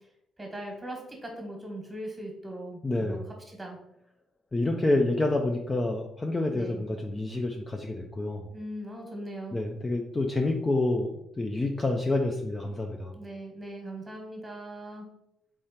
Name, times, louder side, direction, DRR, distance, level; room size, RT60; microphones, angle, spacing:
voice 1, 0.4-3.2 3.5-3.8 6.5-6.9 8.5-9.6 13.1-15.1, right 1 dB, 15° right, 1 dB, 1.5 m, -40 dB
voice 2, 2.8-3.2 4.5-8.5 9.5-11.1 11.4-13.1, left 2 dB, 20° left, 2 dB, 0.5 m, -28 dB
3.6 x 3.2 x 4.2 m, 0.80 s
cardioid pair, 90°, 0 cm